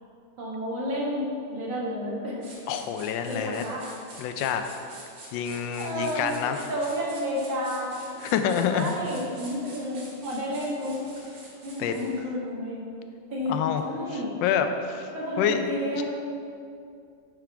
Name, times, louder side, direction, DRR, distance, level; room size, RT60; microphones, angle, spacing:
voice 1, 0.4-2.4 3.3-3.9 5.5-8.1 8.7-11.0 11.6-12.8 13.3-13.6 13.8-14.3 15.1-16.0, equal, 80° right, -4 dB, 2.2 m, -31 dB
sound 1, 2.4-12.2, right 2 dB, 60° right, 2.1 m, -47 dB
voice 2, 2.7-3.6 4.2-4.6 5.3-6.6 8.2-8.9 11.8-11.9 13.5-13.8 14.4-15.1 15.4-15.6 16.0-16.1, left 8 dB, 80° left, 7 dB, 1.3 m, -27 dB
8.8 x 3.7 x 5.8 m, 2.5 s
omnidirectional pair, 2.1 m